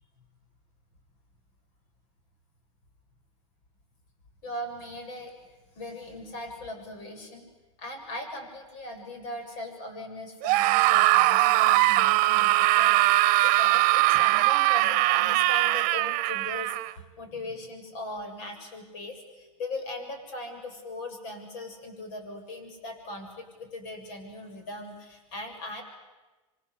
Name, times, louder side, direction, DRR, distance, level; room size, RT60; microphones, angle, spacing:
voice 1, 4.4-5.3 5.7-7.5 7.8-25.8, left 1 dB, 65° left, 5 dB, 7.5 m, -39 dB
Screaming, 10.4-16.9, right 18 dB, 55° right, 1.0 m, -21 dB
28.0 x 24.5 x 8.1 m, 1.2 s
hypercardioid pair, 100°, 17 cm